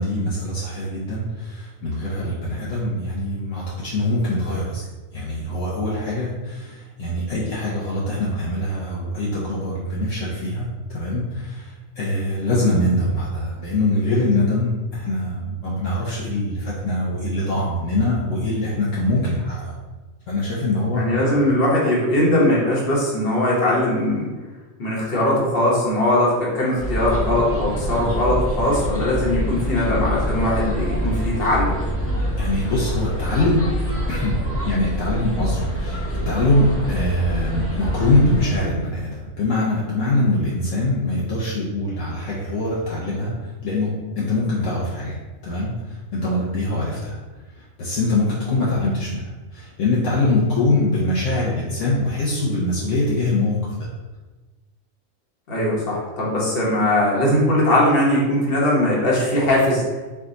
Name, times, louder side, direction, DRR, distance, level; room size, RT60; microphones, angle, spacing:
voice 1, 0.0-4.8 5.1-10.7 10.9-11.7 12.0-19.7 20.3-21.0 32.4-33.7 34.1-34.4 34.6-43.3 43.6-45.2 45.4-45.7 46.1-47.2 47.8-49.3 49.5-53.6, left 2 dB, 70° left, -6 dB, 1.1 m, -23 dB
voice 2, 21.0-24.3 24.8-31.8 55.5-59.8, left 1 dB, 45° left, -5 dB, 1.3 m, -20 dB
sound 1, 26.8-38.6, equal, 20° left, 0.4 m, -25 dB
4.8 x 2.4 x 3.9 m, 1.2 s
omnidirectional pair, 1.4 m